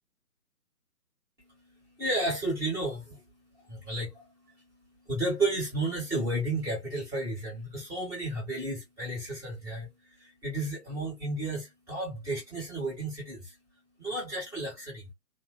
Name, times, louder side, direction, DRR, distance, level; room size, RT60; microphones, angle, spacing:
voice 1, 1.4-15.1, right 2 dB, 5° right, 1.5 m, -33 dB
3.9 x 2.9 x 2.3 m
figure-of-eight pair, 155°, 47 cm